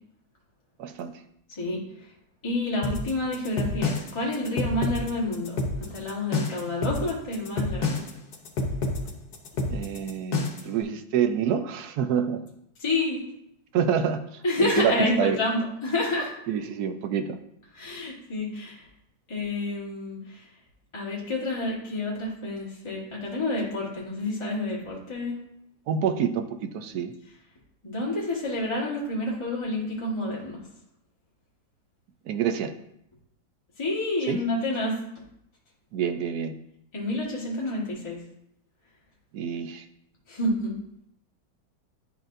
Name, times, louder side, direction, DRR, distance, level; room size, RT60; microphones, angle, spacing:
voice 1, 0.8-1.1 9.7-12.4 13.7-15.4 16.5-17.4 25.9-27.1 32.3-32.7 34.3-34.4 35.9-36.5 39.3-39.8, right 8 dB, 70° right, 8 dB, 1.0 m, -27 dB
voice 2, 1.6-2.1 2.4-8.0 12.8-13.2 14.4-16.3 17.7-18.8 19.3-20.5 20.9-25.4 27.8-30.6 33.8-35.0 36.9-38.2 40.3-40.8, left 2 dB, 20° left, -5 dB, 1.3 m, -29 dB
sound 1, 2.8-10.7, left 3 dB, 65° left, 1.5 m, -29 dB
10.5 x 4.3 x 2.6 m, 0.75 s
omnidirectional pair, 1.9 m